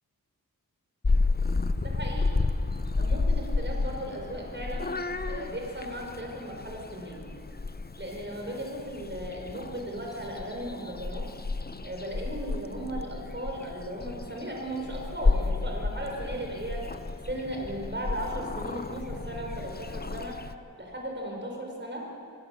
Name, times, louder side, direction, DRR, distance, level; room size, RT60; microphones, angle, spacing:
Purr / Meow, 1.0-20.5, left 3 dB, 25° left, 0.9 m, -31 dB
voice 1, 1.8-2.4 2.9-4.9 5.3-7.2 8.0-11.2 11.8-16.8 17.3-20.3 20.8-22.0, right 1 dB, 30° right, 0 dB, 5.4 m, -36 dB
27.0 x 16.5 x 7.3 m, 2.6 s
wide cardioid pair, 65°, 35 cm